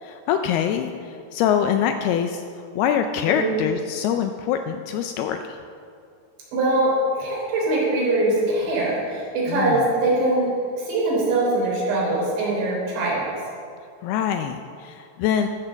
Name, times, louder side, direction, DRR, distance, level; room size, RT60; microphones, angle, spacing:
voice 1, 0.0-2.4 2.8-5.6 9.5-9.9 14.0-15.5, left 9 dB, 85° left, 7 dB, 2.3 m, -24 dB
voice 2, 6.5-10.5 10.8-13.3, right 2 dB, 85° right, -4 dB, 5.7 m, -22 dB
14.0 x 6.9 x 7.0 m, 2.3 s
omnidirectional pair, 5.0 m